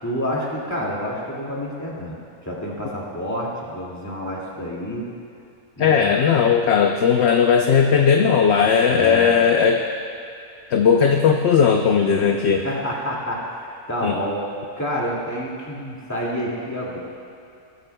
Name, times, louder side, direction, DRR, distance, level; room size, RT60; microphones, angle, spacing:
voice 1, 0.0-2.2 2.4-5.1 5.8-6.2 8.9-9.3 12.6-14.4 14.8-17.0, equal, 10° left, -4 dB, 2.1 m, -28 dB
voice 2, 5.8-9.9 10.7-12.7 14.0-14.2, left 6 dB, 60° left, 3 dB, 0.8 m, -17 dB
19.0 x 12.5 x 2.3 m, 2.6 s
omnidirectional pair, 1.6 m